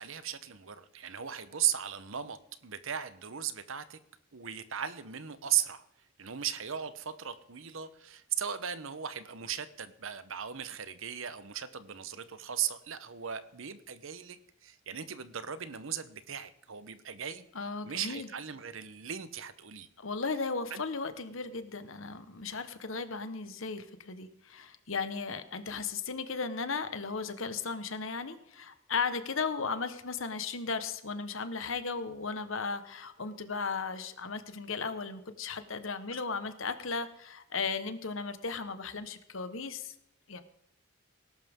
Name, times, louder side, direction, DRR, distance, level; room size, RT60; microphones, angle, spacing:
voice 1, 0.0-4.0 4.3-5.8 6.2-17.5 17.8-19.9 20.7-20.8 36.1-36.2, right 9 dB, 70° right, 13 dB, 0.9 m, -37 dB
voice 2, 17.5-18.3 20.0-39.9 40.3-40.4, left 4 dB, 70° left, 10 dB, 1.3 m, -36 dB
19.0 x 11.5 x 3.7 m, 0.80 s
head